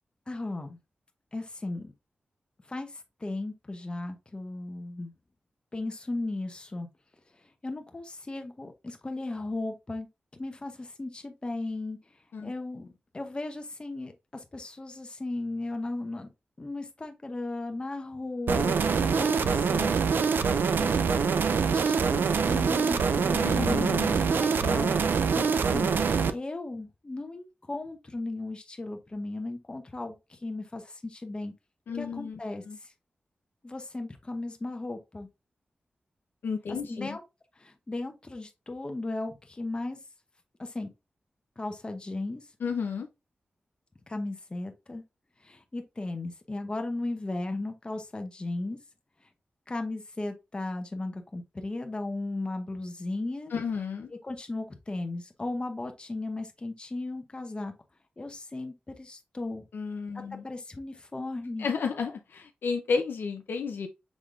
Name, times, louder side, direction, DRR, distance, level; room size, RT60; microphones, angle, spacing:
voice 1, 0.3-0.8 1.3-1.9 2.7-2.9 3.2-5.1 5.7-6.9 7.6-10.1 10.3-12.0 12.4-16.3 16.6-19.9 20.7-25.0 25.3-26.0 26.3-31.5 32.0-32.6 33.6-35.3 36.9-37.2 37.6-40.0 40.6-40.9 41.6-42.4 44.1-45.0 45.4-48.8 49.7-53.5 54.2-57.7 58.2-59.6 60.1-61.7, left 2 dB, 30° left, 0.9 m, -36 dB
sound 1, 18.5-26.3, right 5 dB, 80° right, 0.4 m, -25 dB
voice 2, 23.4-24.2 31.9-32.4 32.6-32.8 36.4-37.2 42.6-43.1 53.5-54.1 59.7-60.4 61.6-63.9, left 5 dB, 90° left, 0.6 m, -32 dB
6.2 x 3.5 x 2.4 m
wide cardioid pair, 90°, 3 cm